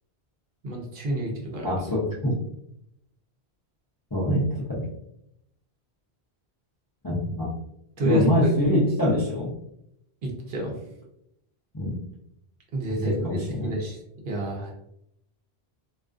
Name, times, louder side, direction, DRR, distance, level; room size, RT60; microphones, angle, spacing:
voice 1, 0.6-1.7 8.0-8.5 10.2-10.7 12.7-14.0 14.2-14.7, equal, 60° right, 0 dB, 0.7 m, -29 dB
voice 2, 1.6-2.3 4.1-4.8 7.0-7.5 8.0-9.5 11.7-11.9 12.9-13.7, left 1 dB, 30° left, -7 dB, 0.4 m, -24 dB
2.4 x 2.3 x 2.3 m, 0.78 s
omnidirectional pair, 1.1 m